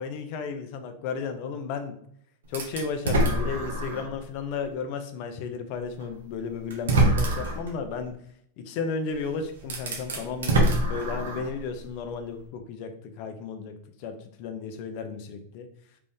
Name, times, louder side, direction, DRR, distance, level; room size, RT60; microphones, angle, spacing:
voice 1, 0.0-1.9 2.5-8.2 8.6-10.6 10.9-13.7 14.0-15.7, left 5 dB, 50° left, 7 dB, 0.6 m, -34 dB
sound 1, 2.5-4.2 4.7-4.8 6.0-6.1 6.7-7.7 9.1-9.2 9.6-11.6, right 1 dB, 85° right, 0.9 m, -25 dB
3.4 x 2.5 x 3.5 m, 0.68 s
hypercardioid pair, 115°, 0 cm